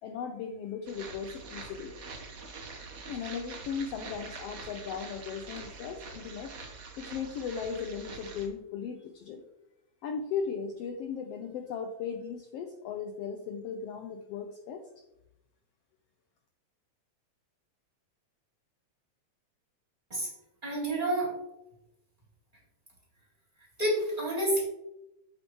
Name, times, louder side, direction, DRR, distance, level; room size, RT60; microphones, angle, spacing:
voice 1, 0.0-1.9 3.1-6.5 7.0-9.4 10.0-14.8, left 6 dB, 75° left, 4 dB, 1.5 m, -37 dB
sound 1, 0.9-8.5, right 4 dB, 80° right, 0.7 m, -45 dB
voice 2, 20.6-21.3 23.8-24.6, right 1 dB, 15° right, -6 dB, 3.1 m, -28 dB
8.4 x 7.9 x 3.1 m, 0.88 s
omnidirectional pair, 3.4 m